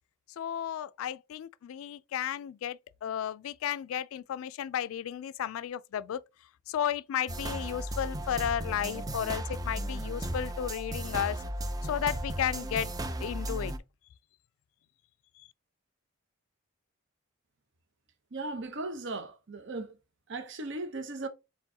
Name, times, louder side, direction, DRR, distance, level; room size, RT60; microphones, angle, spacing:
voice 1, 0.4-6.2 6.7-11.4 11.8-12.9 13.2-13.7, left 9 dB, 80° left, 0.3 m, -33 dB
sound 1, 7.3-13.8, right 1 dB, 20° right, 0.4 m, -35 dB
voice 2, 18.3-20.0 20.3-21.3, right 2 dB, 60° right, 0.7 m, -37 dB
4.5 x 3.5 x 2.7 m
head